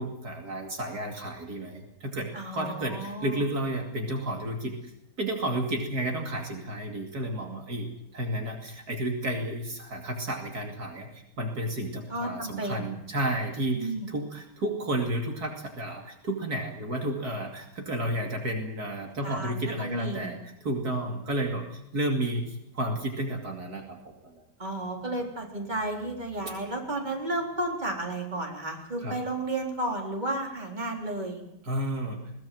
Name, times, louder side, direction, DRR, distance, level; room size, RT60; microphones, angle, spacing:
voice 1, 0.0-4.9 5.2-24.4 26.5-26.6 29.0-29.2 31.6-32.2, right 1 dB, 65° right, 3 dB, 3.1 m, -32 dB
voice 2, 2.3-3.4 12.1-13.0 13.7-14.1 19.2-20.3 24.6-31.4, right 2 dB, 25° right, 1 dB, 4.1 m, -33 dB
21.5 x 18.5 x 7.8 m, 0.81 s
omnidirectional pair, 1.8 m